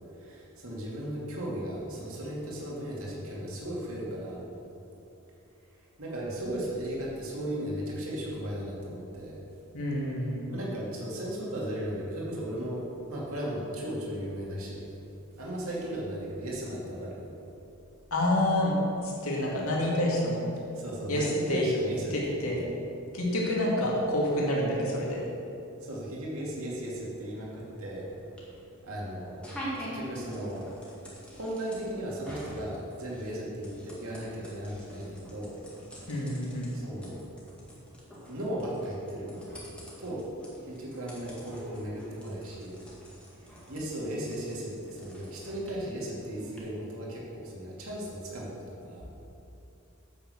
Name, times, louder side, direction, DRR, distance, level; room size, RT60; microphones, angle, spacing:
voice 1, 0.1-4.4 5.8-9.4 10.5-14.9 15.4-17.3 20.8-22.5 25.8-28.1 28.8-30.7 31.3-35.5 36.7-37.2 38.3-39.4 40.0-40.3 40.6-42.8 43.7-49.1, right 1 dB, 70° right, -4 dB, 2.4 m, -36 dB
voice 2, 9.7-10.5 18.1-20.5 21.1-21.7 22.1-22.6 23.1-25.2 36.1-36.7, left 1 dB, 70° left, -4 dB, 2.5 m, -28 dB
sound 1, 27.0-46.6, equal, 5° left, 1.9 m, -47 dB
9.0 x 7.6 x 6.4 m, 2.9 s
head